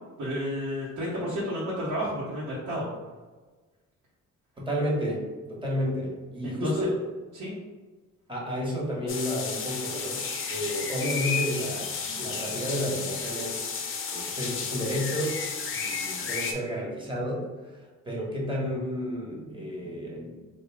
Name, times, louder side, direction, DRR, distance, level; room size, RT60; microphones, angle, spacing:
voice 1, 0.2-2.9 6.4-6.9 7.3-7.5, equal, 75° right, -8 dB, 1.0 m, -31 dB
voice 2, 4.6-7.0 8.3-13.7 14.1-15.3 15.7-20.4, equal, 15° right, -4 dB, 1.2 m, -31 dB
sound 1, 9.1-16.5, left 5 dB, 45° left, 0.6 m, -32 dB
3.5 x 2.3 x 3.4 m, 1.3 s
cardioid pair, 90°, 30 cm